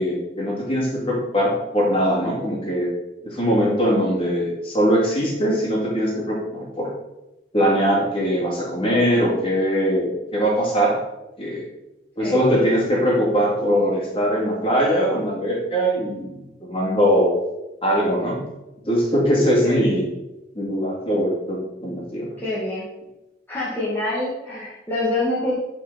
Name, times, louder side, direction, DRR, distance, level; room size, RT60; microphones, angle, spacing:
voice 1, 0.0-2.9 3.2-6.9 7.5-11.0 11.4-11.6 12.2-17.3 17.8-18.4 18.9-20.0 20.5-22.3, equal, 30° left, -4 dB, 2.7 m, -21 dB
voice 2, 22.4-22.8 23.5-25.5, left 2 dB, 10° left, -9 dB, 1.8 m, -26 dB
9.6 x 5.0 x 4.2 m, 0.96 s
head